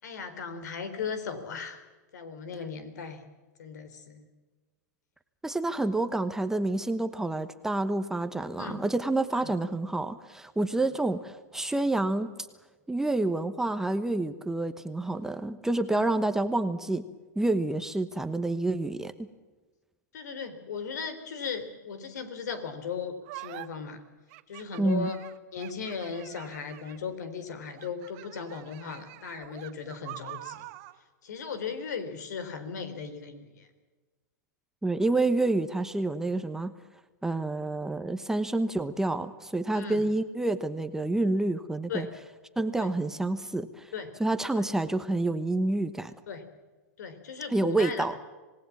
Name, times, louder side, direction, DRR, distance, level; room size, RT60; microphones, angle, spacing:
voice 1, 0.0-1.8 2.1-3.2 3.6-4.3 8.6-8.9 9.3-9.5 15.9-16.1 20.1-24.0 24.5-25.2 25.5-30.6 31.2-33.7 39.7-40.1 41.9-42.1 42.8-42.9 43.9-44.1 44.6-44.7 46.3-46.4 47.0-48.0, left 5 dB, 70° left, 10 dB, 4.0 m, -37 dB
voice 2, 5.4-12.3 12.9-17.0 17.4-19.3 24.8-25.1 34.8-36.7 37.2-42.1 42.6-43.9 44.2-46.1 47.5-48.1, right 2 dB, 5° right, 9 dB, 1.1 m, -28 dB
sound 1, 23.2-23.7 24.3-27.1 27.7-31.0, right 19 dB, 45° right, 1.4 m, -45 dB
27.0 x 19.0 x 7.3 m, 1.3 s
hypercardioid pair, 125°, 10 cm